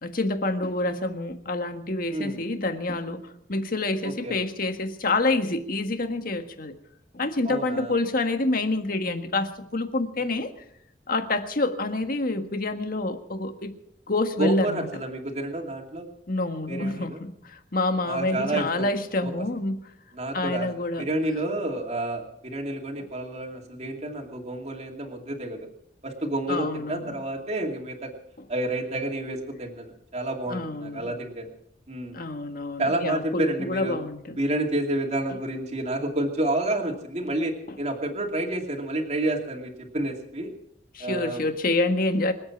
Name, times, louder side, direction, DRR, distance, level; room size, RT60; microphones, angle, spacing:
voice 1, 0.0-6.7 7.1-10.5 11.1-13.7 14.1-14.9 16.3-19.8 20.3-21.1 26.5-27.2 30.5-31.1 32.1-34.4 37.7-37.8 40.9-42.3, left 2 dB, 55° left, 7 dB, 1.7 m, -27 dB
voice 2, 2.1-2.4 4.0-4.3 7.4-8.0 14.4-16.1 16.7-17.2 18.1-18.9 19.2-19.3 20.1-20.7 21.0-25.7 26.0-28.1 28.5-31.5 31.9-32.2 32.8-33.9 34.4-40.5 41.0-41.5, right 1 dB, 40° right, 1 dB, 2.5 m, -29 dB
25.5 x 8.6 x 6.0 m, 0.71 s
head